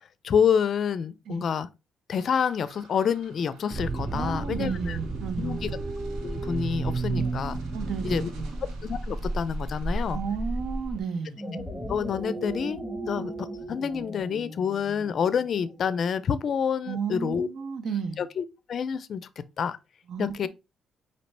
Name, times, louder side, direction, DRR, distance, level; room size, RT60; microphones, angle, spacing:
voice 1, 0.2-1.7 2.1-5.0 5.4-5.7 6.2-7.6 8.0-8.3 8.8-10.2 11.9-12.8 13.1-17.5 18.2-19.2 19.6-19.8 20.2-20.5, left 7 dB, 55° left, 0.4 m, -28 dB
sound 1, 2.1-11.6, right 4 dB, 90° right, 1.1 m, -53 dB
sound 2, 3.7-11.0, right 3 dB, 30° right, 0.5 m, -32 dB
voice 2, 4.1-5.8 7.1-7.3 7.7-8.6 10.1-11.4 16.9-18.2 20.1-20.5, right 6 dB, 65° right, 0.7 m, -33 dB
sound 3, 11.2-15.8, right 1 dB, 5° right, 1.2 m, -37 dB
5.1 x 2.7 x 3.2 m
cardioid pair, 90°, 0 cm